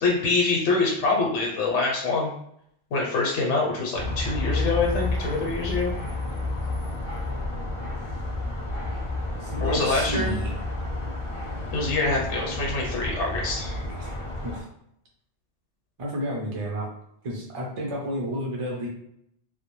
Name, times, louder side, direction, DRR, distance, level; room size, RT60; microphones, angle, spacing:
voice 1, 0.0-2.3 2.9-5.9 9.6-10.3 11.7-13.8, left 3 dB, 85° left, -2 dB, 0.9 m, -25 dB
sound 1, 3.9-14.6, left 2 dB, 50° left, 0.4 m, -30 dB
voice 2, 9.4-10.5 14.0-14.1 14.4-14.7 16.0-16.9 17.2-18.9, equal, 50° right, -2 dB, 0.4 m, -31 dB
2.2 x 2.1 x 3.0 m, 0.73 s
omnidirectional pair, 1.2 m